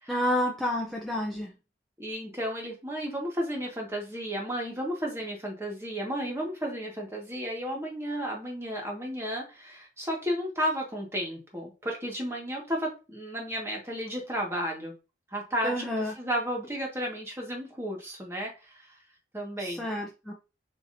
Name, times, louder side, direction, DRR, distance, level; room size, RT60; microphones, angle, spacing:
voice 1, 0.1-1.5 15.6-16.1 19.6-20.3, left 1 dB, ahead, 0.6 m, -29 dB
voice 2, 2.0-14.9 15.3-19.0 19.3-19.9, equal, 15° right, 1.4 m, -33 dB
7.0 x 3.0 x 2.6 m
head